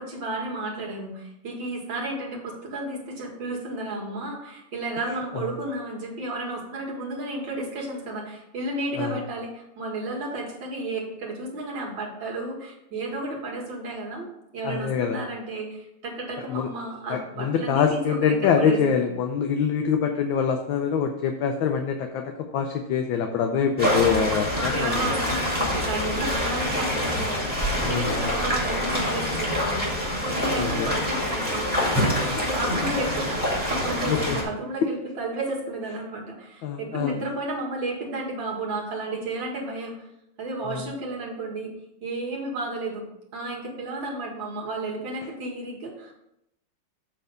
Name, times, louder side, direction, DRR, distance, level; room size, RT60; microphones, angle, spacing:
voice 1, 0.0-14.3 14.5-19.0 24.5-40.1 40.4-41.7 42.0-43.1 43.3-46.2, right 2 dB, 65° right, -2 dB, 2.4 m, -32 dB
voice 2, 14.6-15.2 16.5-16.7 17.1-25.1 27.8-28.3 30.6-31.0 34.1-34.4 36.6-37.2 40.7-40.8, left 7 dB, 70° left, 4 dB, 1.3 m, -25 dB
sound 1, 23.8-34.4, equal, 5° right, 1.8 m, -26 dB
7.9 x 3.4 x 6.5 m, 0.81 s
omnidirectional pair, 2.3 m